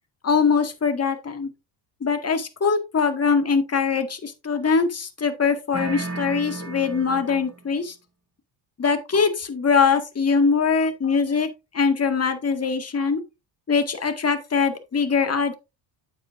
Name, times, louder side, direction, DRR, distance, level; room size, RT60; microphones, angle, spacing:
voice 1, 0.2-1.5 2.0-8.0 8.8-11.5 11.7-13.2 13.7-15.5, left 5 dB, 30° left, 1.9 m, -22 dB
sound 1, 5.7-7.7, right 3 dB, 30° right, 5.8 m, -33 dB
8.8 x 7.9 x 2.6 m
supercardioid pair, 75°, 50 cm